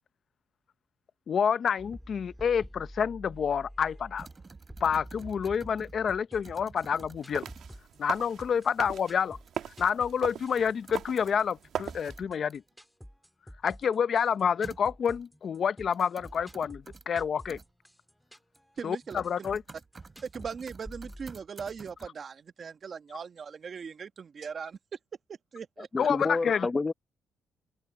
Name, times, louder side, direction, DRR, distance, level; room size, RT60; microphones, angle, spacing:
voice 1, 1.3-4.3 4.8-7.5 8.0-9.4 9.7-12.6 13.6-17.6 18.8-19.6 26.0-26.7, left 7 dB, 55° left, 0.7 m, -28 dB
sound 1, 1.8-21.3, equal, ahead, 3.1 m, -50 dB
sound 2, 4.2-6.0 6.4-7.9 9.5-9.6 9.9-10.0 10.6-11.5 11.8-12.7 14.6-15.3 15.9-17.0 17.5-17.7 18.4-18.8 19.1-22.1, right 4 dB, 30° right, 3.6 m, -49 dB
sound 3, 7.2-12.2, right 9 dB, 70° right, 1.4 m, -40 dB
voice 2, 18.8-19.2 20.2-24.8 25.5-25.9, right 6 dB, 45° right, 1.5 m, -39 dB
voice 3, 25.8-26.9, left 3 dB, 25° left, 1.0 m, -29 dB
cardioid pair, 90°, 0 cm